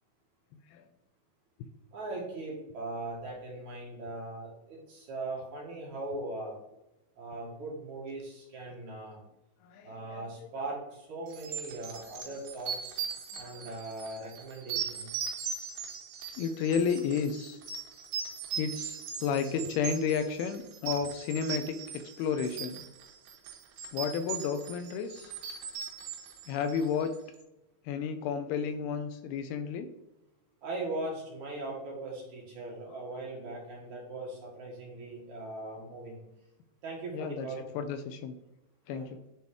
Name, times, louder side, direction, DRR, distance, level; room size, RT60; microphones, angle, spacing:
voice 1, 1.9-6.6 7.2-9.2 9.8-13.0 13.3-15.3 19.6-19.7 30.6-36.2 36.8-37.7 38.9-39.1, right 2 dB, 55° right, -3 dB, 2.6 m, -39 dB
voice 2, 9.7-10.3 13.3-13.7 16.4-17.6 18.6-22.8 23.9-25.4 26.5-27.2 27.9-29.9 37.1-37.5 37.8-38.3 38.9-39.2, left 6 dB, 80° left, 9 dB, 2.4 m, -32 dB
sound 1, 11.3-27.1, right 7 dB, 75° right, 3.0 m, -39 dB
10.5 x 4.0 x 3.5 m, 0.91 s
omnidirectional pair, 4.7 m